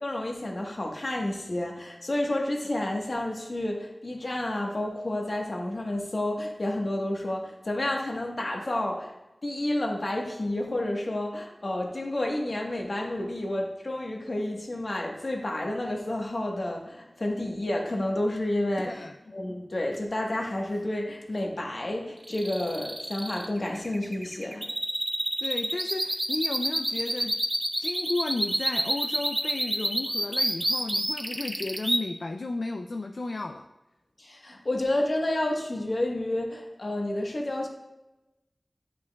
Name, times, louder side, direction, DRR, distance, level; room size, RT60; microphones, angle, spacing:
voice 1, 0.0-9.1 9.4-24.7 34.2-37.7, left 1 dB, 60° left, 1 dB, 1.2 m, -30 dB
sound 1, 22.2-32.0, right 1 dB, 25° right, 0.7 m, -28 dB
voice 2, 25.4-27.4 27.8-33.6, left 3 dB, 75° left, 5 dB, 0.3 m, -33 dB
10.5 x 5.4 x 2.3 m, 1.0 s
wide cardioid pair, 55°, 0 cm